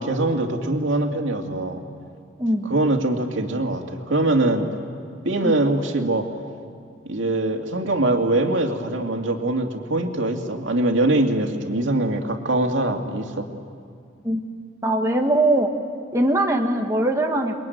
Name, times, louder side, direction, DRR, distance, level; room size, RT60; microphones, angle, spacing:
voice 1, 0.0-1.8 2.6-4.7 5.2-6.3 7.1-13.5, right 2 dB, 85° right, 3 dB, 2.4 m, -23 dB
voice 2, 2.4-2.7 5.4-5.6 14.2-14.4 14.8-15.7 16.1-17.6, right 1 dB, 15° right, 1 dB, 1.6 m, -21 dB
28.5 x 22.0 x 9.4 m, 2.2 s
head